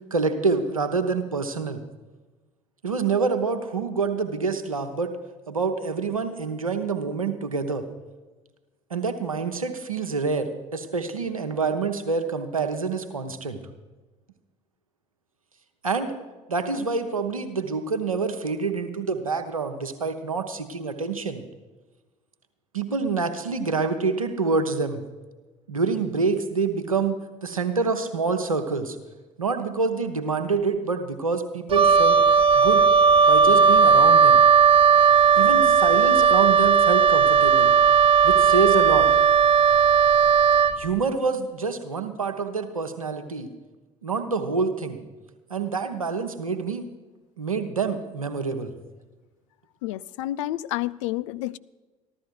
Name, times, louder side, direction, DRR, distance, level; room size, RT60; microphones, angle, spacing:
voice 1, 0.1-1.8 2.8-5.1 5.5-7.8 8.9-13.6 15.8-16.1 16.5-21.4 22.7-25.0 25.7-29.0 29.4-32.2 32.5-32.9 33.2-34.4 35.4-37.7 38.2-39.1 40.8-43.5 44.0-45.0 45.5-46.9 47.4-48.7, right 4 dB, 85° right, 7 dB, 0.9 m, -26 dB
Wind instrument woodwind instrument, 31.7-40.8, right 6 dB, 30° right, 0.6 m, -16 dB
voice 2, 49.8-51.6, left 15 dB, 65° left, 17 dB, 0.4 m, -29 dB
14.5 x 12.5 x 4.6 m, 1.2 s
figure-of-eight pair, 55°, 17 cm